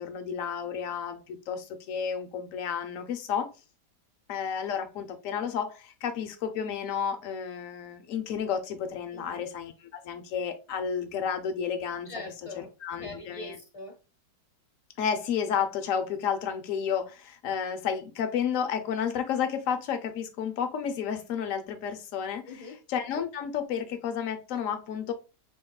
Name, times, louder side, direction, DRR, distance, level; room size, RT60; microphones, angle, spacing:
voice 1, 0.0-3.5 4.3-12.1 12.8-13.6 15.0-22.4 22.9-25.1, left 7 dB, 60° left, 0.9 m, -31 dB
voice 2, 9.1-9.4 12.0-12.7 13.0-14.0 22.5-22.8, left 2 dB, 25° left, 0.7 m, -42 dB
5.4 x 3.7 x 2.3 m
omnidirectional pair, 1.9 m